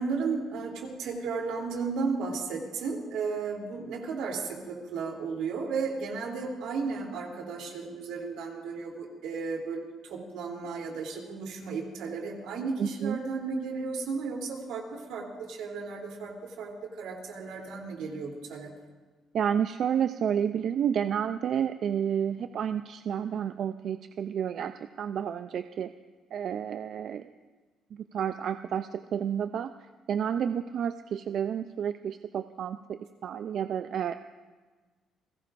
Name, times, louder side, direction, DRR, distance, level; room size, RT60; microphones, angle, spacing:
voice 1, 0.0-18.7, right 4 dB, 85° right, 0 dB, 3.2 m, -34 dB
voice 2, 12.8-13.2 19.3-25.9 26.3-27.3 27.9-34.1, right 8 dB, 55° right, 10 dB, 0.4 m, -30 dB
29.5 x 16.5 x 2.6 m, 1.4 s
cardioid pair, 120°, 0 cm